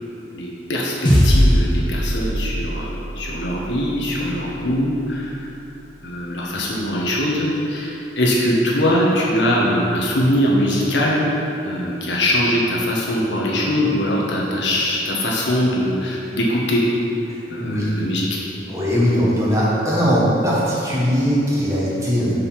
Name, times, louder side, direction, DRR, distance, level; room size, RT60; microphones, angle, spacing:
voice 1, 0.3-5.5 6.0-11.3 11.6-16.8 17.5-18.3, equal, 90° left, -4 dB, 1.4 m, -21 dB
sound 1, 1.0-5.6, equal, 25° left, 1.2 m, -21 dB
voice 2, 17.6-17.9 18.7-22.5, equal, 15° right, -7 dB, 1.7 m, -19 dB
6.7 x 5.3 x 5.8 m, 2.9 s
head